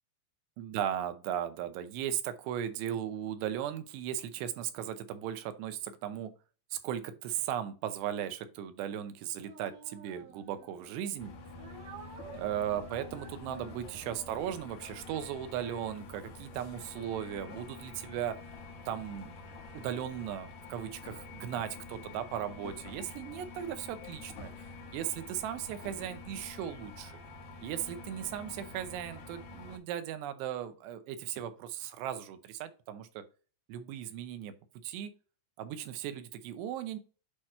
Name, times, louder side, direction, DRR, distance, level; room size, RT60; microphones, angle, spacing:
voice 1, 0.6-6.3 6.7-11.3 12.4-18.4 18.9-19.4 19.7-24.7 24.9-27.2 27.6-33.2 33.7-34.5 34.8-35.1 35.6-37.0, right 10 dB, 85° right, 10 dB, 2.9 m, -37 dB
Speech, 9.4-10.9 11.6-15.6, right 6 dB, 65° right, 2.4 m, -52 dB
sound 1, 11.2-29.8, left 3 dB, 65° left, 1.9 m, -47 dB
8.4 x 3.0 x 4.2 m, 0.35 s
omnidirectional pair, 4.8 m